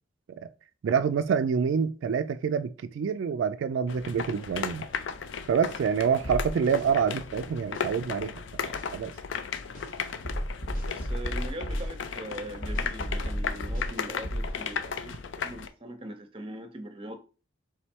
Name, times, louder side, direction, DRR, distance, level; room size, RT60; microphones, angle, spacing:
voice 1, 0.8-4.8 5.5-9.1, right 6 dB, 80° right, 0.3 m, -27 dB
sound 1, 3.9-15.7, left 6 dB, 80° left, 0.4 m, -36 dB
sound 2, 6.2-6.9 7.7-7.9 8.7-8.9 9.7-9.9 10.2-11.9 12.6-13.9 14.2-14.5, equal, 45° left, 0.9 m, -32 dB
voice 2, 10.9-17.2, right 1 dB, 30° right, 0.6 m, -41 dB
3.6 x 3.1 x 4.4 m
head